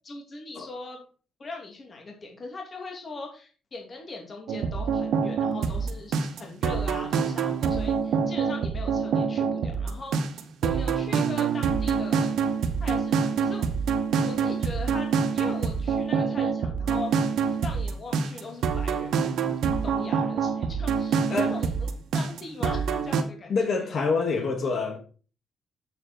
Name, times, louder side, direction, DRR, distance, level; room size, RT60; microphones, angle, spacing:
voice 1, 0.0-1.0 1.4-12.3 12.8-13.7 14.2-17.1 17.6-19.5 19.8-23.6, left 3 dB, 40° left, 2.8 m, -40 dB
sound 1, 4.5-23.2, right 6 dB, 80° right, 1.3 m, -26 dB
voice 2, 23.5-25.0, left 4 dB, 55° left, 2.5 m, -26 dB
7.9 x 7.5 x 4.4 m
cardioid pair, 105°, 0 cm